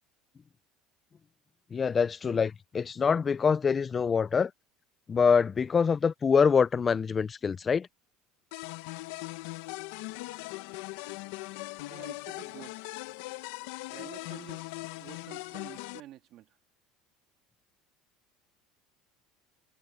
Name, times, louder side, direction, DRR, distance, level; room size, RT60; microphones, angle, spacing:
voice 1, 1.7-4.5 5.1-7.9, left 6 dB, 30° left, 0.6 m, -25 dB
sound 1, 8.5-16.0, left 21 dB, 80° left, 1.1 m, -40 dB
voice 2, 11.4-12.8 13.9-16.6, right 14 dB, 60° right, 2.2 m, -50 dB
supercardioid pair, 105°, 0 cm